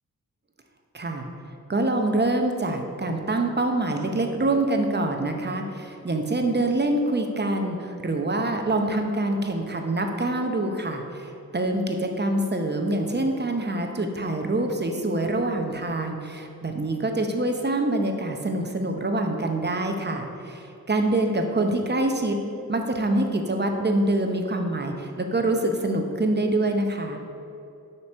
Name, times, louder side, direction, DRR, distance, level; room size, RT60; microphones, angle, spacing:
voice 1, 0.9-1.3 1.7-22.4 22.7-27.2, right 2 dB, 30° right, 4 dB, 0.8 m, -25 dB
7.2 x 3.1 x 6.1 m, 2.8 s
cardioid pair, 50°, 36 cm